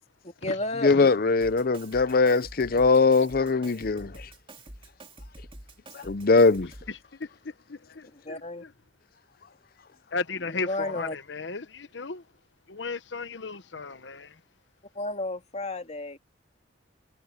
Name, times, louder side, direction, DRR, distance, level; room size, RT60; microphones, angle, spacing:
voice 1, 0.2-0.9 2.9-3.0 8.3-8.6 10.5-11.2 14.9-16.2, left 2 dB, 35° left, 2.3 m, -32 dB
voice 2, 0.8-4.1 6.0-6.7, left 4 dB, 55° left, 0.7 m, -21 dB
Drum kit, 1.4-7.0, right 1 dB, 30° right, 3.8 m, -47 dB
voice 3, 6.9-8.7 10.1-12.2 12.7-14.4, left 4 dB, 70° left, 1.1 m, -35 dB
head